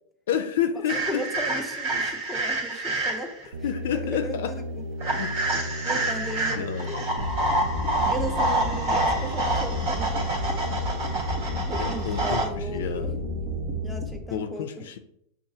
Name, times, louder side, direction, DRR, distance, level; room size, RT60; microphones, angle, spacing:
voice 1, 0.3-1.3 3.6-4.5 5.2-5.3 6.5-7.0 8.9-9.0 11.8-13.1 14.3-15.0, left 9 dB, 80° left, 0.4 m, -29 dB
voice 2, 0.9-3.3 3.9-5.1 5.8-7.1 8.1-10.7 11.6-13.1 13.8-14.9, right 1 dB, ahead, 0.6 m, -36 dB
sound 1, 0.9-3.5 5.0-12.5, right 2 dB, 65° right, 1.4 m, -28 dB
sound 2, 3.5-14.1, left 1 dB, 80° right, 0.4 m, -34 dB
sound 3, 7.2-14.2, equal, 45° right, 0.6 m, -33 dB
5.9 x 2.4 x 2.7 m
supercardioid pair, 130°, 0 cm